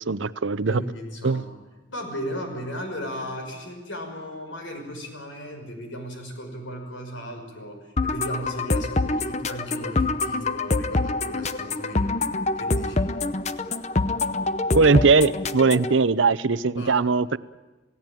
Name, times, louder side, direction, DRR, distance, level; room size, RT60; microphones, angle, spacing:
voice 1, 0.1-0.8 1.2-1.4 14.7-17.4, right 4 dB, 80° right, 17 dB, 0.7 m, -20 dB
voice 2, 0.7-1.6 1.9-12.2 12.6-13.1 16.7-17.0, equal, 85° left, 4 dB, 5.9 m, -36 dB
sound 1, 8.0-16.0, left 2 dB, 35° left, 0.8 m, -26 dB
28.0 x 17.5 x 9.2 m, 1.2 s
head